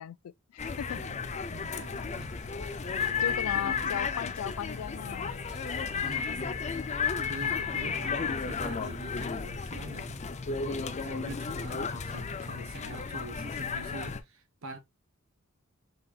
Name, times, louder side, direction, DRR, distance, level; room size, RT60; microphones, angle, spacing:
voice 1, 0.0-1.0 3.2-5.5 5.9-6.4, left 9 dB, 90° left, 0.3 m, -38 dB
sound 1, 0.6-14.2, left 5 dB, 35° left, 0.5 m, -33 dB
voice 2, 0.9-2.3 2.9-3.9 6.0-6.6 7.1-10.2 10.7-14.8, right 2 dB, 75° right, 1.1 m, -45 dB
sound 2, 1.8-9.4, left 1 dB, ahead, 1.2 m, -52 dB
5.4 x 4.0 x 2.4 m
head